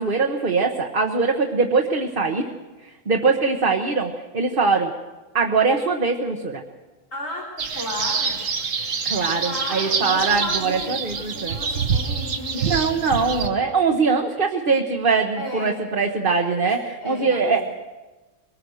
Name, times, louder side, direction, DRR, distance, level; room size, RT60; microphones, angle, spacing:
voice 1, 0.0-2.4 2.8-4.9 5.3-6.6 9.0-11.6 12.6-17.6, right 4 dB, 45° right, 2 dB, 1.4 m, -22 dB
voice 2, 7.1-8.4 9.4-13.2 15.4-15.7 17.0-17.6, left 1 dB, 80° left, 0 dB, 3.9 m, -34 dB
sound 1, 7.6-13.5, right 5 dB, 85° right, 1.7 m, -26 dB
23.0 x 20.0 x 6.4 m, 1.2 s
omnidirectional pair, 1.3 m